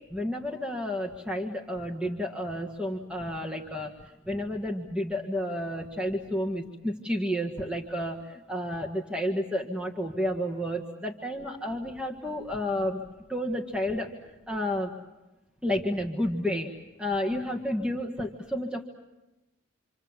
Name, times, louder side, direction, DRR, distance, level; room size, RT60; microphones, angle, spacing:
voice 1, 0.0-13.0 13.3-14.1 14.5-14.9 15.6-16.7 17.0-18.8, equal, 5° right, 0 dB, 1.6 m, -31 dB
27.5 x 27.0 x 7.3 m, 1.0 s
head